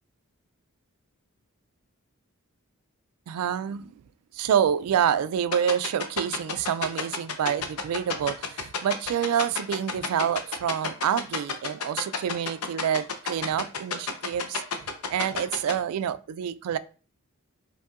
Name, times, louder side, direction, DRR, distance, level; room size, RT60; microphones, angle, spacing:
voice 1, 3.3-3.9 4.3-14.6 15.1-16.8, right 9 dB, 75° right, 0.3 m, -27 dB
sound 1, 5.5-15.7, left 6 dB, 85° left, 0.7 m, -29 dB
5.3 x 2.6 x 2.5 m
head